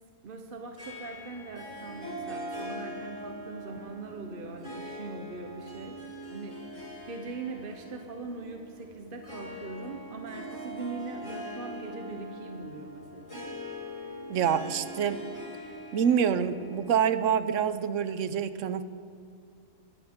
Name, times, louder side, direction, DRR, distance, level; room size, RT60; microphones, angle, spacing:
voice 1, 0.2-6.7 7.0-13.4, right 3 dB, 45° right, 4 dB, 0.9 m, -41 dB
Harp, 0.8-17.5, equal, 25° left, 2.9 m, -42 dB
voice 2, 14.3-15.2 15.9-18.8, right 8 dB, 70° right, 12 dB, 1.0 m, -26 dB
20.5 x 12.5 x 3.6 m, 2.4 s
omnidirectional pair, 1.4 m